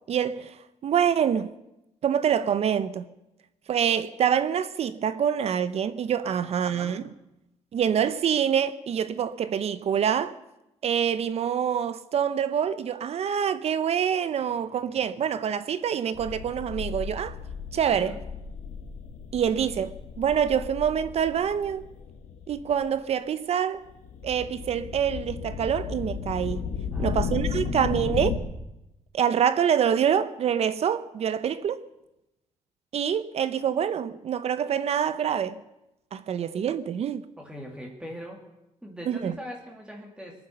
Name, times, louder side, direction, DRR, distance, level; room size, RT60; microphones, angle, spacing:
voice 1, 0.1-0.6 0.8-1.5 2.0-3.1 3.7-7.1 7.7-10.3 10.8-17.3 17.7-18.2 19.3-21.8 22.5-23.8 24.2-26.7 27.0-28.4 29.1-31.8 32.9-35.6 36.1-37.2 39.1-39.3, right 8 dB, 55° right, 0.7 m, -26 dB
voice 2, 6.2-7.1 14.5-15.2 17.9-18.2 26.9-27.7 37.4-38.4 38.8-40.5, equal, 5° right, 2.4 m, -43 dB
sound 1, 16.1-22.9 23.9-28.4, left 6 dB, 75° left, 1.7 m, -34 dB
21.5 x 9.5 x 6.6 m
cardioid pair, 115°, 13 cm